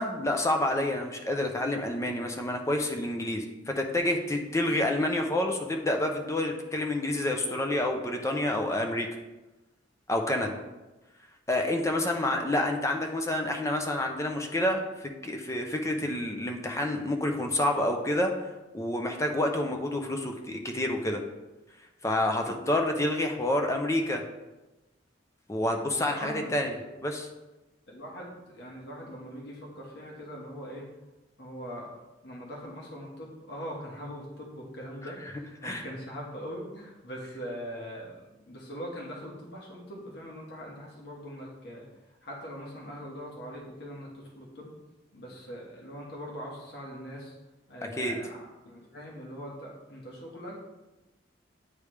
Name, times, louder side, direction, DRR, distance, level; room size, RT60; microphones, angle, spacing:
voice 1, 0.0-9.1 10.1-10.6 11.5-18.3 18.7-21.2 22.0-24.2 25.5-26.7 27.0-27.3 35.6-35.8 48.0-48.2, left 1 dB, 15° left, 3 dB, 0.5 m, -28 dB
voice 2, 26.0-26.5 27.9-30.9 31.4-31.9 32.2-44.7 45.1-47.4 47.7-50.6, equal, 60° left, -3 dB, 1.5 m, -42 dB
9.6 x 3.3 x 3.3 m, 1.1 s
head